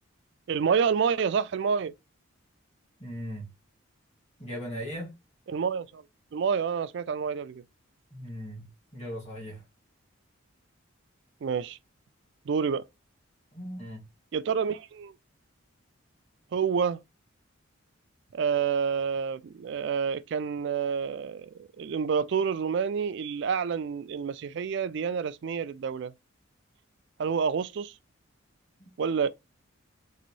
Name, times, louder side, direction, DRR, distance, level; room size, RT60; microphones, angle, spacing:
voice 1, 0.5-1.9 5.5-6.0 6.3-7.6 11.4-11.8 12.5-12.8 14.3-15.1 16.5-17.0 18.3-26.1 27.2-27.9 29.0-29.3, right 6 dB, 55° right, 0.3 m, -28 dB
voice 2, 3.0-3.5 4.4-5.2 8.1-9.6 13.5-14.0 28.8-28.9, equal, 30° left, 2.0 m, -38 dB
3.9 x 2.6 x 3.0 m
head